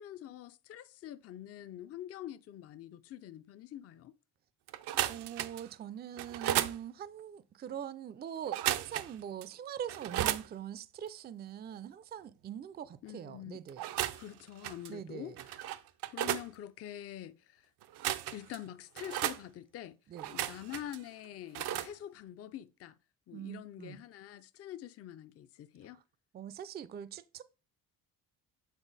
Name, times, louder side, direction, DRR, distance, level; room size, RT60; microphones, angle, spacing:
voice 1, 0.0-4.1 13.0-13.6 14.1-15.8 16.1-17.7 18.3-20.0 20.3-23.0 23.3-26.0, left 12 dB, 40° left, 0.4 m, -46 dB
sound 1, 4.7-5.7 6.2-6.8 8.5-9.1 9.4-9.5 9.9-10.5 13.7-14.3 14.6-14.9 15.4-16.5 17.8-18.6 19.0-19.4 20.2-21.0 21.5-21.9, right 12 dB, 85° right, 0.6 m, -34 dB
voice 2, 5.1-13.9 14.9-15.4 20.1-20.3 23.3-24.0 26.3-27.4, right 9 dB, 25° right, 0.4 m, -43 dB
8.1 x 3.9 x 4.0 m
cardioid pair, 130°, 38 cm